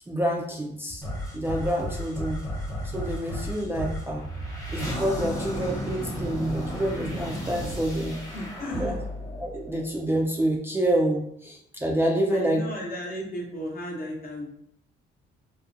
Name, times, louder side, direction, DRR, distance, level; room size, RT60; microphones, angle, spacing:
voice 1, 0.1-1.0 1.3-2.4 2.8-4.3 4.7-8.2 8.8-8.9 9.4-12.6, right 1 dB, 10° right, -2 dB, 0.3 m, -27 dB
sound 1, 1.0-10.3, equal, 15° left, 0.9 m, -34 dB
voice 2, 8.3-9.0 12.3-14.6, equal, 50° left, -1 dB, 0.8 m, -34 dB
2.5 x 2.2 x 2.5 m, 0.71 s
cardioid pair, 90°, 20 cm